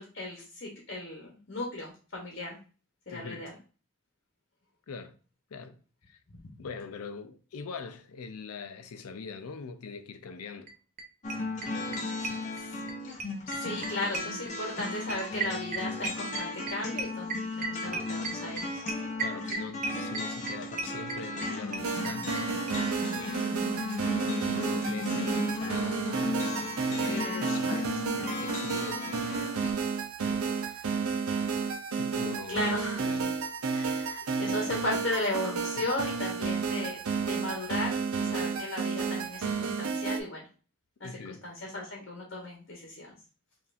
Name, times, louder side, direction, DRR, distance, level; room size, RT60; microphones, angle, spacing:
voice 1, 0.0-2.6 3.1-3.5 6.3-6.5 12.6-12.8 13.5-18.8 27.0-27.8 30.5-30.8 32.5-33.1 33.7-40.4 41.0-43.1, left 1 dB, 50° left, 1.0 m, -36 dB
voice 2, 3.1-3.5 4.9-5.2 5.5-5.8 6.1-6.2 6.6-10.7 11.6-12.5 13.6-13.8 19.2-22.4 23.2-23.5 24.0-26.0 26.9-29.0 29.3-29.6 30.2-30.7 31.1-31.3 31.6-33.5 34.0-34.2 35.8-35.9 41.0-41.4, left 5 dB, 85° left, 0.5 m, -43 dB
sound 1, 10.7-10.8 11.0-11.1 11.3-12.9 13.2-22.4 22.7-22.8 23.0-23.1 23.3-23.4, right 4 dB, 35° right, 0.6 m, -35 dB
sound 2, 11.2-29.7, left 2 dB, 35° left, 0.7 m, -35 dB
sound 3, 21.8-40.2, right 5 dB, 85° right, 0.6 m, -31 dB
5.4 x 2.6 x 2.5 m
head